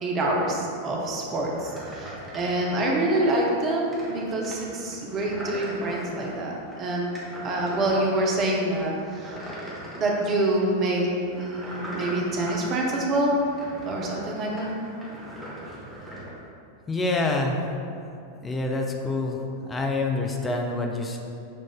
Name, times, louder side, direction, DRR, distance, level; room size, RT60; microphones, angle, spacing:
voice 1, 0.0-9.4 10.0-13.4 13.9-14.7, right 1 dB, 30° right, -2 dB, 0.6 m, -26 dB
sound 1, 1.5-16.3, equal, 5° right, 0.9 m, -40 dB
voice 2, 16.9-17.6 18.4-21.2, left 2 dB, 15° left, 1 dB, 0.4 m, -27 dB
6.7 x 2.4 x 2.2 m, 2.6 s
figure-of-eight pair, 90°, 0 cm